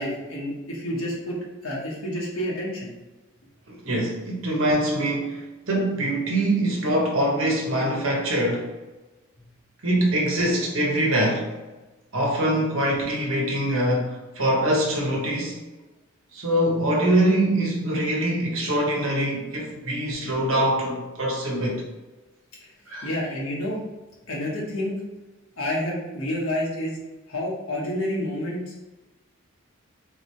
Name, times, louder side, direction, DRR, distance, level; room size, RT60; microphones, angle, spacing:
voice 1, 0.0-1.4 1.6-2.9 23.0-23.8 24.3-25.0 25.6-27.0 27.3-28.7, left 1 dB, 85° left, -4 dB, 1.4 m, -29 dB
voice 2, 3.7-8.7 9.8-11.5 12.1-15.6 16.3-21.8 22.9-23.1, right 1 dB, 75° right, -1 dB, 1.2 m, -24 dB
3.8 x 3.6 x 3.2 m, 1.1 s
head